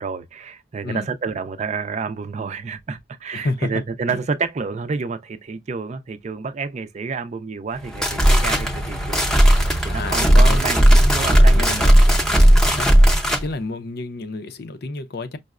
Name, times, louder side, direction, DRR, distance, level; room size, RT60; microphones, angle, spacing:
voice 1, 0.0-9.6 9.8-11.9 12.3-12.6, right 4 dB, 40° right, 0.4 m, -29 dB
voice 2, 3.3-3.7 4.1-4.2 9.8-10.6 10.9-11.8 12.6-12.9 13.4-15.4, left 3 dB, 60° left, 0.6 m, -30 dB
sound 1, 7.8-13.4, equal, 5° left, 0.6 m, -15 dB
5.3 x 2.0 x 2.4 m
head